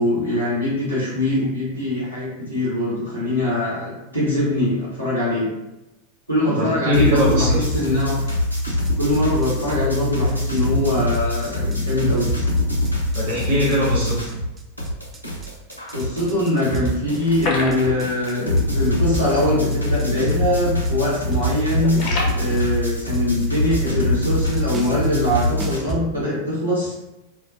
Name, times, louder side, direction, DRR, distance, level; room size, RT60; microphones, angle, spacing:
voice 1, 0.0-5.5 6.3-8.2 9.0-12.3 15.9-22.0 22.3-26.9, left 1 dB, 90° right, -9 dB, 1.2 m, -22 dB
voice 2, 6.5-7.6 13.1-14.2, left 1 dB, 50° right, -5 dB, 0.7 m, -21 dB
sound 1, 6.9-14.5 14.8-25.8, left 1 dB, 90° left, 0.5 m, -24 dB
sound 2, 7.7-26.0, right 3 dB, 20° right, 0.3 m, -33 dB
sound 3, 17.2-18.4 18.7-18.8 19.2-19.3 19.9-20.1 20.4-20.8 21.1-22.3, left 2 dB, 35° left, 0.6 m, -28 dB
2.5 x 2.1 x 2.6 m, 0.99 s
figure-of-eight pair, 90°, 0 cm